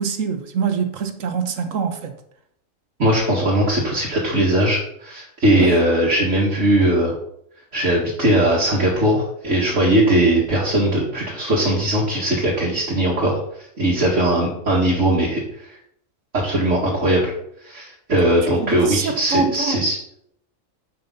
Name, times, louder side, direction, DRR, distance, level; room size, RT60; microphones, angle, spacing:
voice 1, 0.0-2.1 5.5-5.7 18.5-19.8, right 5 dB, 85° right, 1.4 m, -24 dB
voice 2, 3.0-7.2 7.7-13.4 13.8-15.7 16.3-17.3 17.6-20.0, right 1 dB, 65° right, 2.4 m, -19 dB
10.5 x 6.2 x 4.0 m
omnidirectional pair, 1.3 m